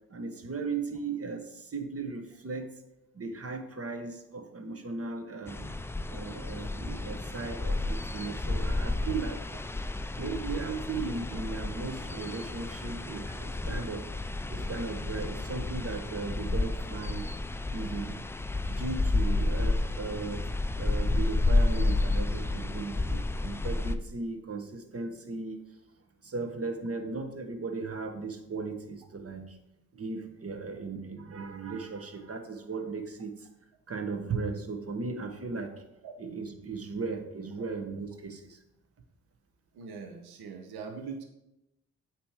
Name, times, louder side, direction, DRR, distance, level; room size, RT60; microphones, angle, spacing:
voice 1, 0.1-2.8 3.1-5.7 6.1-9.4 10.2-14.1 14.5-17.3 17.7-18.2 18.6-25.8 26.2-29.6 29.9-33.5 33.9-35.8 36.2-38.6, right 4 dB, 35° right, 7 dB, 1.1 m, -37 dB
sound 1, 5.5-23.9, left 2 dB, 5° left, 0.3 m, -31 dB
voice 2, 39.7-41.2, right 5 dB, 65° right, 3 dB, 0.9 m, -41 dB
8.3 x 3.1 x 4.8 m, 0.89 s
hypercardioid pair, 45°, 40 cm